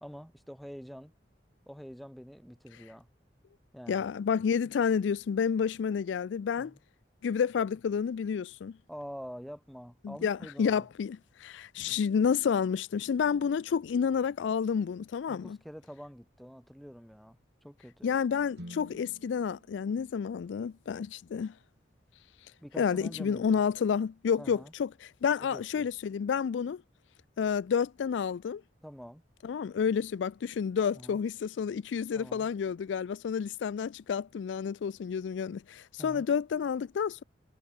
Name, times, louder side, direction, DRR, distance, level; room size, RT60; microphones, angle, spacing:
voice 1, 0.0-1.1 1.7-3.1 3.7-4.1 6.6-6.8 8.9-10.9 15.3-18.1 22.6-23.6 24.4-24.7 25.4-25.9 28.8-29.2 30.9-31.2 32.1-32.5 36.0-36.3, equal, ahead, 2.5 m, -46 dB
voice 2, 3.9-6.7 7.2-8.8 10.0-15.6 18.0-21.5 22.8-26.8 27.4-28.6 29.4-37.2, left 6 dB, 85° left, 0.4 m, -30 dB
sound 1, 18.5-22.6, equal, 65° right, 6.6 m, -53 dB
head